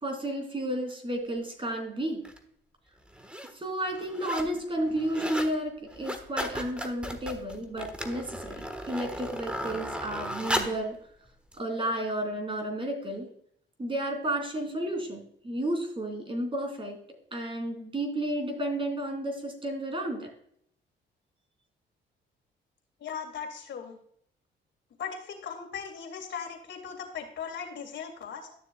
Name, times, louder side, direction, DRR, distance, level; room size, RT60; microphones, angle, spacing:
voice 1, 0.0-2.2 3.5-11.0 11.6-13.3 13.8-17.0 17.3-20.3 28.5-28.6, right 1 dB, 25° right, 4 dB, 3.0 m, -32 dB
sound 1, 2.2-2.4 3.1-3.5 3.8-4.6 4.9-5.5 5.9-10.9 11.5-11.6, equal, 5° right, 1.3 m, -35 dB
voice 2, 23.0-24.0 25.0-28.5, left 6 dB, 65° left, 2 dB, 2.3 m, -38 dB
12.5 x 6.8 x 2.3 m, 0.65 s
cardioid pair, 90°, 20 cm